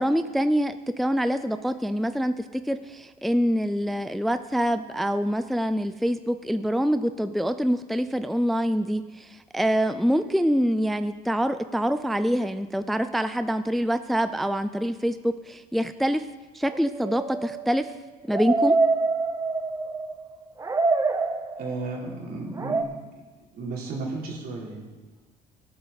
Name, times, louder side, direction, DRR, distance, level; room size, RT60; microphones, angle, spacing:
voice 1, 0.0-16.3 16.5-17.9 18.3-18.8, equal, ahead, 11 dB, 0.4 m, -25 dB
sound 1, 16.7-20.3 20.6-21.9 22.6-22.8, right 3 dB, 20° right, 0.9 m, -26 dB
voice 2, 21.6-22.8 23.5-24.8, right 3 dB, 65° right, -3 dB, 3.5 m, -33 dB
18.0 x 8.8 x 4.0 m, 1.3 s
cardioid pair, 110°, 17 cm